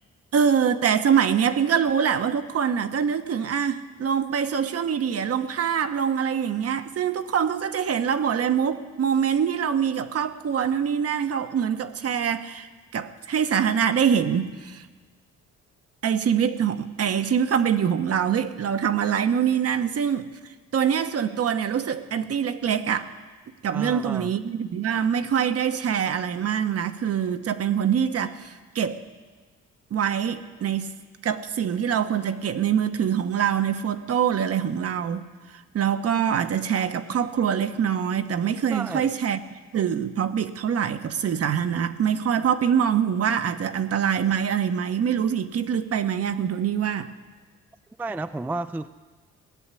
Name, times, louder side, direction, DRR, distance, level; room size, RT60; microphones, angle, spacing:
voice 1, 0.3-12.7 12.9-14.9 16.0-20.3 20.7-23.1 23.6-29.0 29.9-30.9 31.2-35.3 35.5-47.1, right 8 dB, 50° right, 10 dB, 1.0 m, -24 dB
voice 2, 23.7-24.3 38.7-39.1 48.0-48.9, right 3 dB, 5° right, 11 dB, 0.3 m, -31 dB
17.0 x 7.2 x 9.8 m, 1.4 s
cardioid pair, 90°, 30 cm